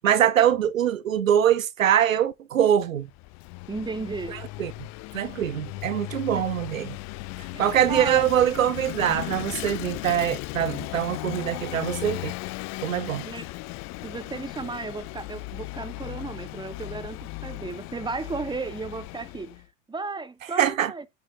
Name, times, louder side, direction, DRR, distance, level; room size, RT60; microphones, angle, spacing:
voice 1, 0.0-3.1 4.6-4.7 5.1-7.0 7.6-12.3 12.8-13.3 20.6-20.9, right 10 dB, 80° right, 0.8 m, -23 dB
Vehicle / Engine, 3.0-19.6, left 23 dB, 45° left, 0.7 m, -37 dB
voice 2, 3.7-4.4 6.4-6.5 7.5-8.2 13.0-13.5 14.0-19.6 19.9-21.0, right 3 dB, 10° right, 1.6 m, -34 dB
16.0 x 9.1 x 2.9 m
figure-of-eight pair, 75°, 39 cm